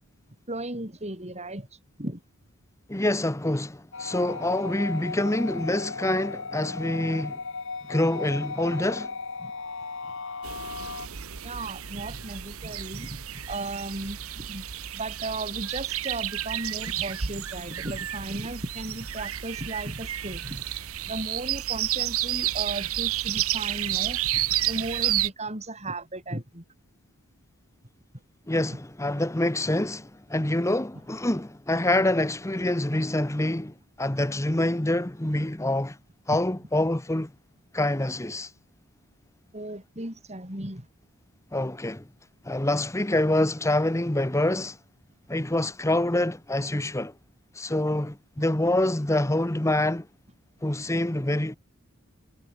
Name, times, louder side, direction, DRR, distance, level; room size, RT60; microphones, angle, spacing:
voice 1, 0.5-1.7 2.0-2.2 9.4-9.5 11.4-14.7 14.9-20.6 21.0-26.6 28.7-28.8 39.5-40.9, right 2 dB, 30° right, 6.2 m, -35 dB
voice 2, 2.9-7.4 7.9-9.1 28.5-36.0 36.3-37.3 37.7-38.5 41.5-42.1 42.4-44.8 45.3-47.1 47.5-50.1 50.6-51.6, left 1 dB, 15° left, 1.0 m, -26 dB
sound 1, 3.9-11.1, left 4 dB, 60° left, 2.3 m, -36 dB
sound 2, 10.4-25.3, right 12 dB, 70° right, 1.2 m, -31 dB
head